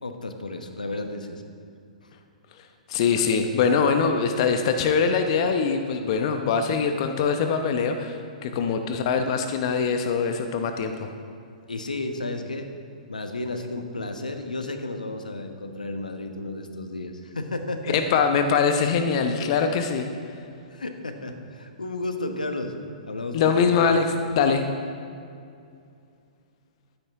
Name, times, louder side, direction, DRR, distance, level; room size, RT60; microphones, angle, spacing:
voice 1, 0.0-1.4 8.7-8.8 11.7-12.7 13.1-18.0 20.7-22.7 23.1-23.7, left 2 dB, 85° left, 6 dB, 1.2 m, -32 dB
voice 2, 2.9-11.1 17.9-20.1 23.3-24.7, left 5 dB, 50° left, 6 dB, 0.9 m, -23 dB
12.0 x 9.8 x 4.8 m, 2.4 s
figure-of-eight pair, 115°, 4 cm